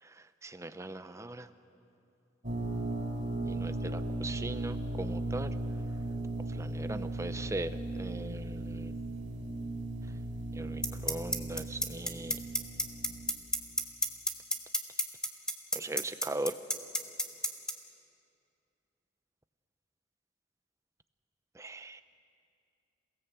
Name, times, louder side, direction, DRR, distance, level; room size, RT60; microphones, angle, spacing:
voice 1, 0.0-1.5 3.5-5.6 6.5-8.9 10.5-12.4 15.7-16.6 21.5-22.0, right 2 dB, 15° right, 12 dB, 0.7 m, -40 dB
sound 1, 2.4-13.3, right 2 dB, 45° right, 3.1 m, -37 dB
sound 2, 10.8-17.7, left 1 dB, 5° left, 1.4 m, -29 dB
28.0 x 17.5 x 8.1 m, 2.6 s
head